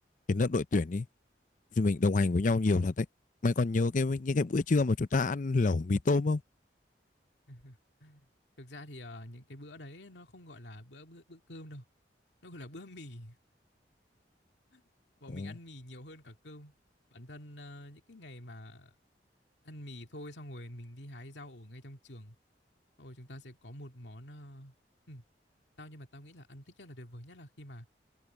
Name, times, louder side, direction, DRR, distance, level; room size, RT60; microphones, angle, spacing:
voice 1, 0.3-1.1 1.8-3.1 3.4-6.4 15.3-15.5, left 3 dB, 45° left, 0.6 m, -27 dB
voice 2, 7.5-8.3 8.6-11.9 12.4-13.4 14.7-14.8 15.2-16.7 17.1-18.9 19.6-22.4 23.0-24.7 25.1-25.2 25.8-27.9, left 1 dB, 80° left, 2.3 m, -48 dB
head